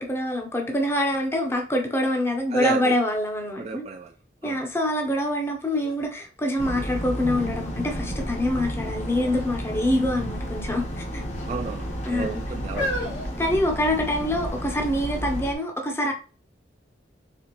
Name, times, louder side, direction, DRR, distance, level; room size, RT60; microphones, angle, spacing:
voice 1, 0.0-3.8 4.4-11.2 12.1-12.4 13.4-16.1, left 1 dB, 15° left, 0.6 m, -25 dB
voice 2, 2.5-2.9 3.6-4.1 4.4-4.6 11.5-12.9, right 4 dB, 35° right, 0.3 m, -32 dB
sound 1, 5.2-5.3 5.7-7.2 7.8-8.3 9.2-9.5 9.8-10.0 10.8-11.5 12.2-14.2 15.0-15.1, left 1 dB, 80° left, 1.7 m, -35 dB
sound 2, 6.6-15.5, equal, 40° left, 0.9 m, -32 dB
4.3 x 3.5 x 2.9 m
head